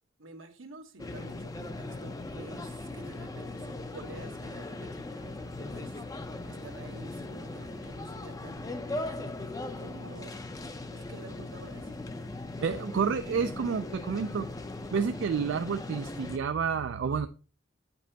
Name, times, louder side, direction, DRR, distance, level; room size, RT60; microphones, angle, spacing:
voice 1, 0.2-10.3 10.9-12.0, right 2 dB, 80° right, 5 dB, 1.1 m, -50 dB
sound 1, 1.0-16.4, left 2 dB, 15° left, 0.4 m, -39 dB
voice 2, 12.6-14.5 14.9-17.3, right 6 dB, 65° right, 9 dB, 0.3 m, -29 dB
8.8 x 5.3 x 2.8 m, 0.36 s
head